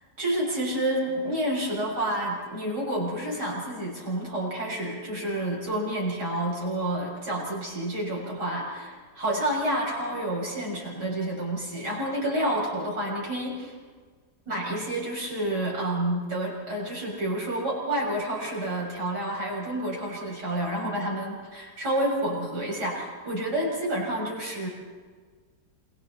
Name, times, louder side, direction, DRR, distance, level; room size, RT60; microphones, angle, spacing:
voice 1, 0.2-13.7 14.5-24.7, right 1 dB, 75° right, -3 dB, 7.6 m, -29 dB
28.5 x 27.5 x 4.4 m, 1.5 s
omnidirectional pair, 1.8 m